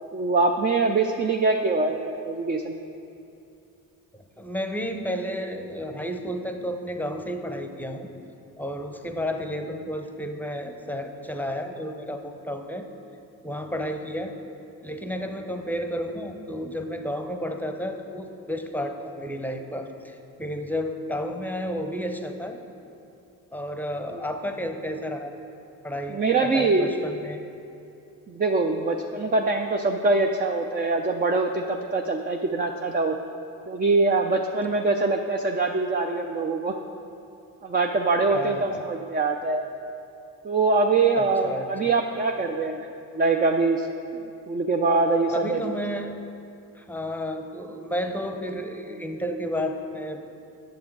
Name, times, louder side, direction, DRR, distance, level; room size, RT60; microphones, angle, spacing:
voice 1, 0.1-2.8 24.1-24.2 26.1-27.0 28.3-33.2 33.7-36.7 37.6-39.7 40.4-42.9 43.1-43.9 44.5-45.6, right 3 dB, 20° right, 3 dB, 0.5 m, -23 dB
voice 2, 4.4-8.1 8.6-12.8 13.4-14.3 14.8-22.6 23.5-25.3 25.8-27.4 38.3-38.8 41.2-41.9 45.3-46.3 46.7-50.2, equal, 5° left, 6 dB, 0.8 m, -32 dB
9.3 x 6.9 x 4.7 m, 2.7 s
hypercardioid pair, 45°, 45 cm